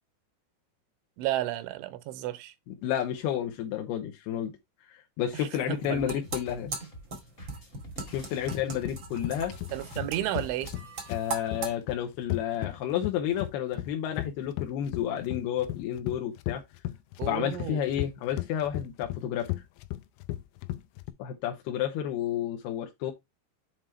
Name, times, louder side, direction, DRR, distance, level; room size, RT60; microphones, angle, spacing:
voice 1, 1.2-2.5 5.3-6.2 9.7-10.7 17.2-17.8, right 14 dB, 85° right, 3.2 m, -33 dB
voice 2, 2.7-4.5 5.2-6.7 8.1-9.6 11.1-16.6 17.3-19.5 21.2-23.1, left 10 dB, 75° left, 2.6 m, -31 dB
sound 1, 5.7-11.7, right 4 dB, 60° right, 1.2 m, -39 dB
sound 2, 5.9-10.7, right 1 dB, 30° left, 1.4 m, -46 dB
sound 3, 8.1-21.1, left 15 dB, 90° left, 3.1 m, -36 dB
7.7 x 4.0 x 4.6 m
omnidirectional pair, 5.4 m